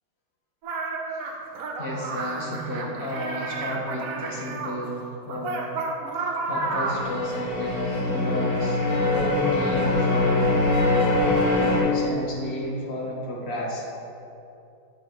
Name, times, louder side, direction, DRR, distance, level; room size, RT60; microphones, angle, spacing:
sound 1, 0.6-4.8 5.3-7.1, right 3 dB, 75° right, 0.8 m, -31 dB
voice 1, 1.8-5.7 6.1-10.6 11.1-13.9, left 1 dB, 55° left, -3 dB, 0.7 m, -32 dB
sound 2, 6.5-11.8, left 2 dB, 75° left, 1.9 m, -23 dB
6.9 x 3.2 x 5.6 m, 2.7 s
omnidirectional pair, 2.1 m